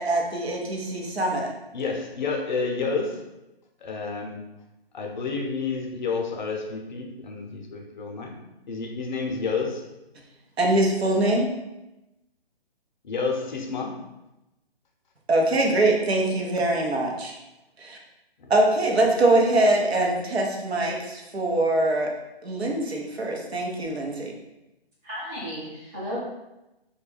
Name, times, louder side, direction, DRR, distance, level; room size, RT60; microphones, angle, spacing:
voice 1, 0.0-1.5 10.6-11.5 15.3-17.3 17.8-18.0 18.5-22.1 22.4-24.3, right 2 dB, 85° right, 0 dB, 0.8 m, -23 dB
voice 2, 1.7-3.2 3.8-4.4 4.9-8.3 8.7-9.8 13.0-14.0 18.4-18.5, left 4 dB, 50° left, 1 dB, 0.5 m, -29 dB
voice 3, 25.0-26.2, equal, 15° right, -9 dB, 0.7 m, -34 dB
2.3 x 2.2 x 3.2 m, 0.96 s
hypercardioid pair, 145°, 31 cm